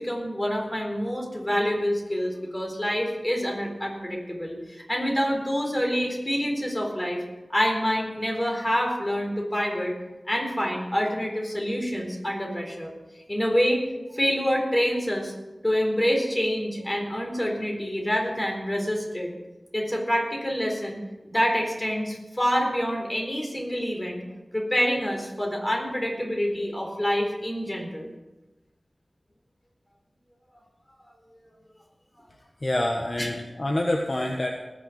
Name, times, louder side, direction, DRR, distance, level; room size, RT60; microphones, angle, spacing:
voice 1, 0.0-7.2 7.5-9.9 10.3-12.9 13.3-13.8 14.1-15.3 15.6-19.3 19.7-21.0 21.3-24.2 24.5-28.1 33.2-33.3, equal, 20° left, 0 dB, 4.0 m, -27 dB
voice 2, 32.6-34.5, left 1 dB, 45° left, 0 dB, 1.4 m, -26 dB
19.5 x 6.8 x 5.8 m, 1.1 s
wide cardioid pair, 50°, 0 cm